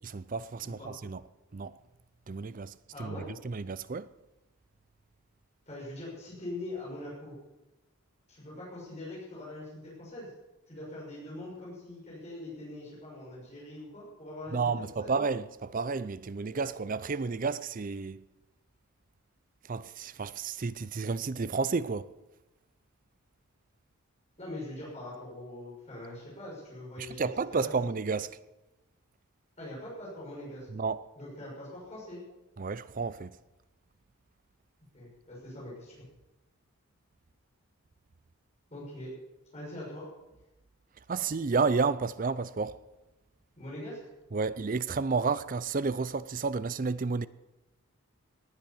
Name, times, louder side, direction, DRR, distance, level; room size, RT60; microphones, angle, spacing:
voice 1, 0.0-1.2 1.5-1.8 2.3-3.2 3.4-4.1 14.5-18.3 19.7-22.1 27.0-28.4 30.7-31.0 32.6-33.4 41.1-42.8 44.3-47.3, right 4 dB, 40° right, 0.4 m, -31 dB
voice 2, 0.6-0.9 2.9-3.4 5.7-7.3 8.3-10.3 10.7-14.7 15.0-15.1 24.4-27.7 29.6-30.7 31.1-32.2 34.9-36.0 38.7-39.1 39.5-40.1 43.6-44.0, left 1 dB, 30° left, 6.4 m, -42 dB
19.0 x 9.6 x 7.4 m
head